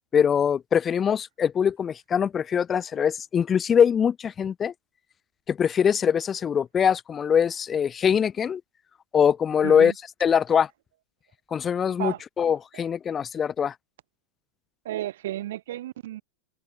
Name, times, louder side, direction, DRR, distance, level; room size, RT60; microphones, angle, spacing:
voice 1, 0.1-4.7 5.5-8.6 9.1-9.9 10.2-10.7 11.5-13.7, left 7 dB, 20° left, 0.4 m, -23 dB
voice 2, 9.6-9.9 12.0-12.2 14.8-16.2, right 14 dB, 55° right, 2.1 m, -32 dB
open air
figure-of-eight pair, 90°, 0 cm